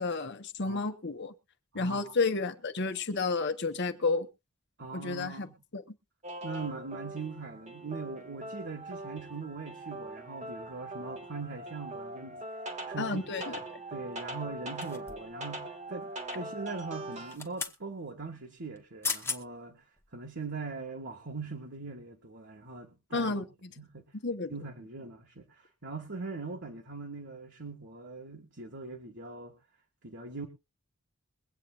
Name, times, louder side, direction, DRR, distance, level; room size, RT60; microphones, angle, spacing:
voice 1, 0.0-1.3 1.7-4.3 4.9-5.5 5.7-5.8 13.0-13.6 23.1-23.5 24.2-24.5, left 3 dB, 55° left, 1.1 m, -31 dB
voice 2, 1.7-2.1 4.8-5.5 6.4-12.4 12.9-13.5 13.9-19.8 20.1-23.4 23.8-24.0 24.5-29.5 30.0-30.5, right 3 dB, 55° right, 1.7 m, -41 dB
sound 1, 6.2-17.4, right 2 dB, 35° right, 1.5 m, -42 dB
sound 2, 14.8-15.4 17.1-17.8 18.8-18.9 19.0-19.4 20.0-20.1, left 4 dB, 10° left, 1.0 m, -36 dB
22.5 x 8.6 x 2.4 m
head